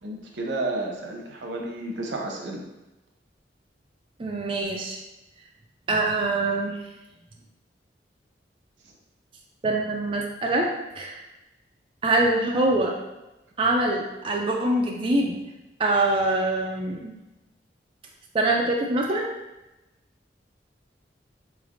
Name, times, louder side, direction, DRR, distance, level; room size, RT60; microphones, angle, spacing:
voice 1, 0.0-2.6, right 2 dB, 85° right, 0 dB, 0.7 m, -31 dB
voice 2, 4.2-5.0 5.9-6.8 9.6-11.2 12.0-12.9 13.6-15.4 15.8-17.1 18.3-19.3, right 2 dB, 30° right, -1 dB, 0.3 m, -24 dB
4.0 x 3.2 x 2.5 m, 0.98 s
head